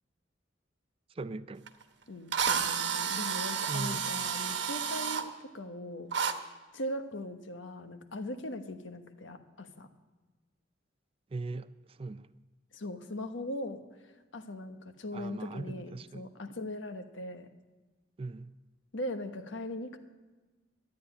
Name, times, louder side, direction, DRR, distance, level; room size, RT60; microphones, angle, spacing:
voice 1, 1.1-1.7 3.7-4.0 11.3-12.3 15.1-16.3 18.2-18.5, right 3 dB, 30° right, 12 dB, 0.4 m, -39 dB
Drill, 1.7-1.8 2.3-5.2 6.1-6.3, right 7 dB, 70° right, 1.1 m, -31 dB
voice 2, 2.1-6.3 6.7-9.9 12.7-13.8 14.3-17.5 18.9-20.0, left 1 dB, 85° left, 8 dB, 1.2 m, -40 dB
12.5 x 9.4 x 9.9 m, 1.3 s
head